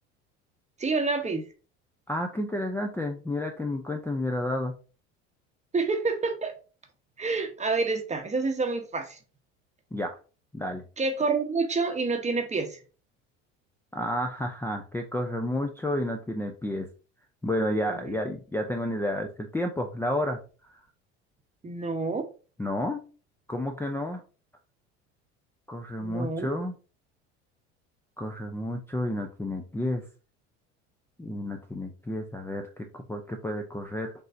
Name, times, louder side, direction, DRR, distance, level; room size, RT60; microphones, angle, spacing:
voice 1, 0.8-1.4 5.7-6.5 7.2-9.2 11.0-12.8 18.0-18.2 21.6-22.3 26.0-26.5, right 3 dB, 20° right, 0.9 m, -28 dB
voice 2, 2.1-4.8 9.9-10.1 10.5-10.8 13.9-16.9 17.4-20.4 22.6-23.0 23.5-24.2 25.7-26.7 28.2-30.0 31.2-34.1, left 1 dB, 5° left, 0.6 m, -31 dB
5.3 x 3.1 x 2.6 m
hypercardioid pair, 85°, 33 cm